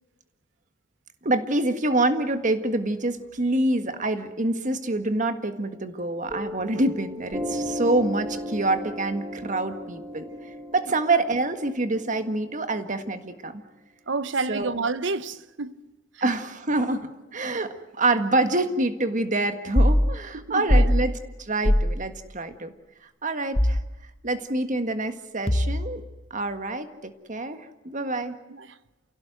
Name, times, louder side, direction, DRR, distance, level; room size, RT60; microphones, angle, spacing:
voice 1, 1.2-10.3 10.7-13.6 14.5-14.7 16.2-21.1 21.4-22.7 23.2-23.8 24.2-26.0 26.3-26.9 27.3-28.4, right 2 dB, 40° right, 1.7 m, -26 dB
Piano, 6.3-13.4, equal, 20° right, 2.2 m, -36 dB
voice 2, 14.1-15.8 16.1-16.3 20.3-21.0 28.1-28.2 28.5-28.8, right 3 dB, 65° right, 1.0 m, -30 dB
sound 1, 19.8-20.0 20.7-21.0 21.6-21.9 23.6-23.9 25.5-26.0, equal, 30° left, 1.2 m, -19 dB
29.5 x 17.0 x 8.0 m
head